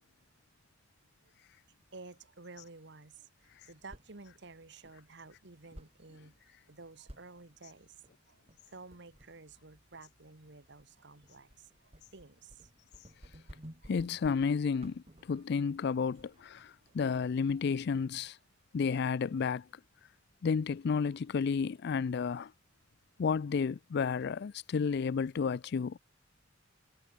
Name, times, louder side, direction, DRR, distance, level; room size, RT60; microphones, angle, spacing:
voice 1, 1.9-12.7 13.4-13.5 13.8-13.9 15.3-15.4 16.4-17.0, right 3 dB, 65° right, 1.7 m, -53 dB
sound 1, 3.4-18.3, equal, 35° right, 3.1 m, -57 dB
voice 2, 13.9-18.4 18.7-19.7 20.4-22.5 23.2-26.0, left 5 dB, 60° left, 0.4 m, -31 dB
head